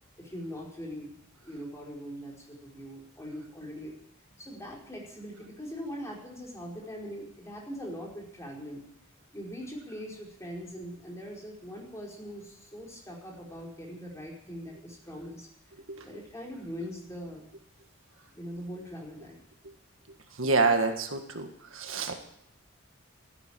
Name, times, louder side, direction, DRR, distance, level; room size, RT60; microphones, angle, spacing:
voice 1, 0.2-3.9 4.4-8.8 9.3-15.5 16.0-17.4 18.3-19.4, equal, 15° left, -2 dB, 4.8 m, -41 dB
voice 2, 20.4-22.2, right 3 dB, 75° right, 5 dB, 1.8 m, -27 dB
14.0 x 10.5 x 8.8 m, 0.73 s
head